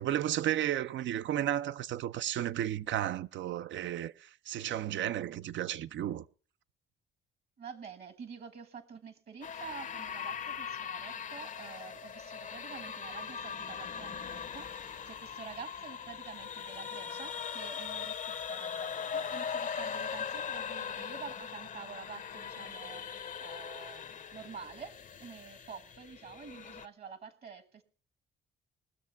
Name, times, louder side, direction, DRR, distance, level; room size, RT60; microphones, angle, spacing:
voice 1, 0.0-6.3, right 11 dB, 70° right, 0.6 m, -33 dB
voice 2, 7.6-27.8, right 6 dB, 50° right, 1.4 m, -48 dB
sound 1, 9.4-26.9, left 7 dB, 40° left, 0.6 m, -40 dB
19.5 x 6.6 x 5.7 m
cardioid pair, 90°, 20 cm